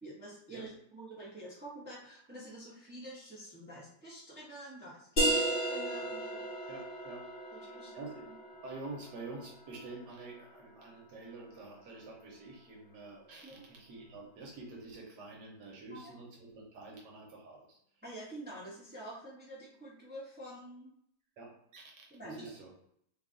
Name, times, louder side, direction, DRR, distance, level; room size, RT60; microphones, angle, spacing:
voice 1, 0.0-6.7 7.5-8.0 13.4-13.6 15.9-16.1 18.0-20.9 22.1-22.5, right 1 dB, 10° right, -6 dB, 0.6 m, -48 dB
sound 1, 5.2-10.5, right 1 dB, 35° left, 0.9 m, -35 dB
voice 2, 6.7-8.3 8.6-17.8 21.4-21.9 22.2-22.7, right 3 dB, 75° right, -2 dB, 1.4 m, -48 dB
3.3 x 2.4 x 3.7 m, 0.69 s
omnidirectional pair, 1.9 m